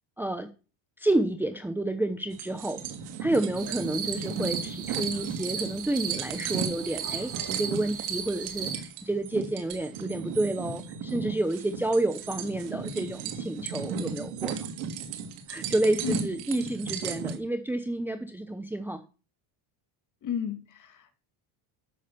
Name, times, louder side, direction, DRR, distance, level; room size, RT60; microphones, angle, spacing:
voice 1, 0.2-0.5 1.0-2.8 3.2-14.7 15.5-19.0, right 1 dB, 5° right, 8 dB, 0.8 m, -29 dB
sound 1, 2.3-17.4, right 6 dB, 90° right, 2.8 m, -36 dB
sound 2, 3.6-8.7, right 7 dB, 40° right, 2.8 m, -36 dB
voice 2, 20.2-21.2, left 7 dB, 40° left, 7 dB, 2.5 m, -33 dB
13.0 x 6.5 x 6.9 m, 0.34 s
cardioid pair, 145°, 47 cm